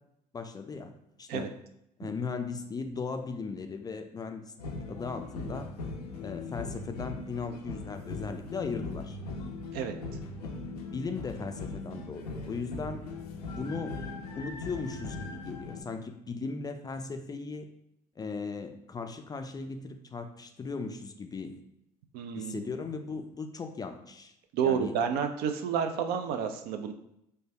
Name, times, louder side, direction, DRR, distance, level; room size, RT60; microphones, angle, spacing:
voice 1, 0.3-0.9 1.2-1.6 2.0-5.7 6.2-9.2 10.4-10.5 10.9-13.1 13.5-14.0 14.4-17.7 18.2-21.6 22.4-24.3 24.6-25.0, left 4 dB, 20° left, 6 dB, 0.3 m, -37 dB
sound 1, 4.6-15.8, left 3 dB, 85° left, 0.5 m, -39 dB
voice 2, 22.1-22.6 24.5-26.9, right 7 dB, 55° right, 7 dB, 0.4 m, -30 dB
3.3 x 2.2 x 3.3 m, 0.78 s
hypercardioid pair, 65°, 19 cm